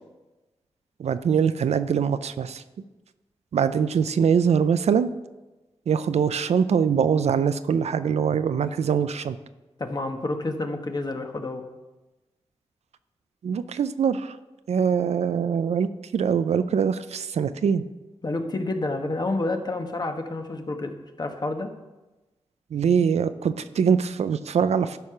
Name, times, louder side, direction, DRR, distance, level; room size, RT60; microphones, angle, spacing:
voice 1, 1.0-2.6 3.5-5.1 5.9-9.4 13.4-14.4 14.7-17.8 22.7-25.0, right 7 dB, 80° right, 13 dB, 0.4 m, -23 dB
voice 2, 9.8-11.6 18.2-21.7, left 2 dB, 40° left, 5 dB, 1.2 m, -29 dB
11.5 x 4.9 x 5.8 m, 1.1 s
cardioid pair, 65°, 11 cm